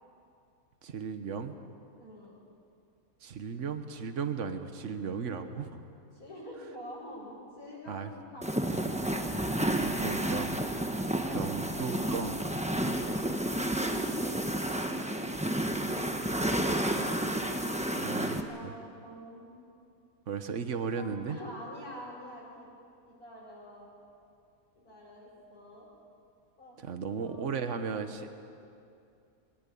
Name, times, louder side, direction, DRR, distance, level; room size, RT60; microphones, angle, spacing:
voice 1, 0.8-1.6 3.2-5.8 7.9-8.1 9.8-10.6 11.3-12.4 18.0-18.7 20.3-21.4 26.8-28.3, right 6 dB, 55° right, 8 dB, 1.5 m, -36 dB
voice 2, 2.0-2.4 6.1-9.5 13.8-15.2 18.0-19.6 20.9-22.7 23.0-23.9 24.8-25.9 26.6-28.1, equal, 80° left, -8 dB, 7.2 m, -47 dB
sound 1, 8.4-18.4, right 1 dB, 5° right, 1.1 m, -31 dB
22.5 x 20.0 x 8.7 m, 2.5 s
omnidirectional pair, 1.6 m